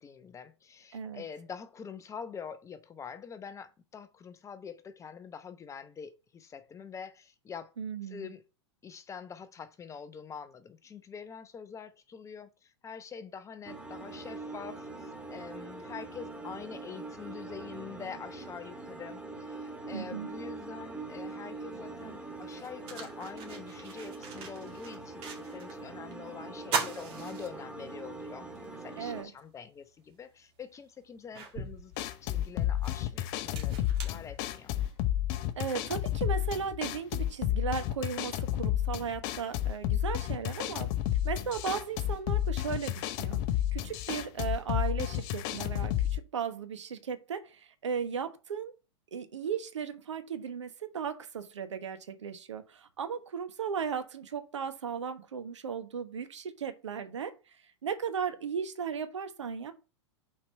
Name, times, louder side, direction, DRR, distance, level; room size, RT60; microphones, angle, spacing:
voice 1, 0.0-7.7 8.0-8.4 8.8-31.9 32.2-34.7, left 6 dB, 20° left, 0.8 m, -45 dB
voice 2, 0.9-1.2 7.8-8.3 19.9-20.3 29.0-29.3 35.6-40.9 41.2-43.5 43.7-48.7 49.1-57.3 57.8-59.7, right 7 dB, 75° right, 1.3 m, -36 dB
sound 1, 13.6-29.2, right 3 dB, 5° right, 1.7 m, -43 dB
sound 2, 21.8-21.9 22.4-25.8 26.1-26.2 26.6-28.1 28.6-28.7 30.1-30.2 30.7-34.9, right 5 dB, 40° right, 2.3 m, -39 dB
sound 3, 31.9-46.2, left 12 dB, 45° left, 0.8 m, -31 dB
5.8 x 4.7 x 5.6 m
hypercardioid pair, 100°, 15 cm